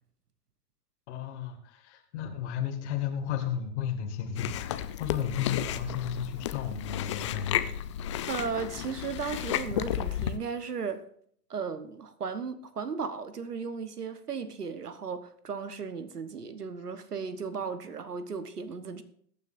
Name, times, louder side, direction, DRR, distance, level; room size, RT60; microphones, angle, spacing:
voice 1, 1.1-7.6, left 8 dB, 45° left, 2.1 m, -33 dB
Chewing mastication, 4.3-10.4, left 11 dB, 20° left, 0.4 m, -33 dB
voice 2, 8.2-11.0 11.5-19.0, right 5 dB, 75° right, 1.2 m, -35 dB
21.5 x 9.3 x 2.6 m
figure-of-eight pair, 105°, 46 cm